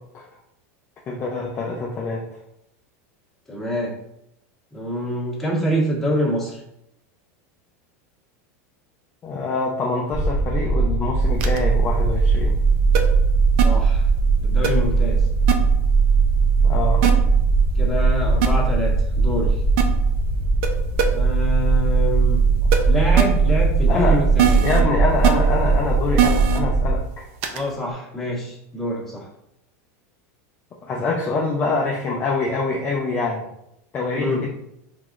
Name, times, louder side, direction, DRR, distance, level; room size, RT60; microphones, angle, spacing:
voice 1, 1.1-2.4 9.2-12.6 16.6-17.2 23.9-24.2 24.6-27.3 30.8-33.5 33.9-34.5, left 3 dB, 25° left, -2 dB, 0.6 m, -25 dB
voice 2, 3.5-3.9 4.7-6.6 13.6-14.0 14.4-15.3 17.7-19.6 21.1-22.4 22.8-24.6 27.5-29.3 34.2-34.4, left 1 dB, 5° left, -6 dB, 1.5 m, -26 dB
sound 1, 10.1-27.0, right 4 dB, 20° right, 1.4 m, -19 dB
sound 2, 11.4-11.6 12.9-13.0 13.6-13.7 14.6-14.7 15.5-15.6 17.0-17.1 18.4-18.5 19.8-19.9 20.6-20.7 21.0-21.1 22.7-22.8 23.2-23.3 24.4-24.8 25.2-25.3 26.2-26.6 27.4-27.6, right 9 dB, 60° right, 0.6 m, -19 dB
4.6 x 3.7 x 2.5 m, 0.82 s
supercardioid pair, 140°, 8 cm